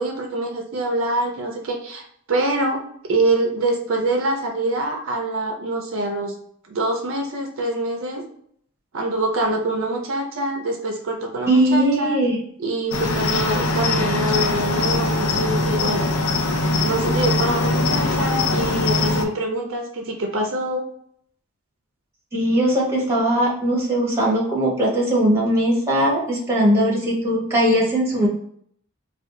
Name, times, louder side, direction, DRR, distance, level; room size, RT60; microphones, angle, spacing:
voice 1, 0.0-6.3 6.7-8.2 8.9-12.2 12.6-16.1 16.8-20.8, right 2 dB, 60° right, 2 dB, 0.5 m, -25 dB
voice 2, 11.5-12.4 22.3-28.3, right 1 dB, 10° right, -5 dB, 0.8 m, -19 dB
Cricket, 12.9-19.2, left 2 dB, 65° left, 0.4 m, -21 dB
2.5 x 2.3 x 3.6 m, 0.65 s
head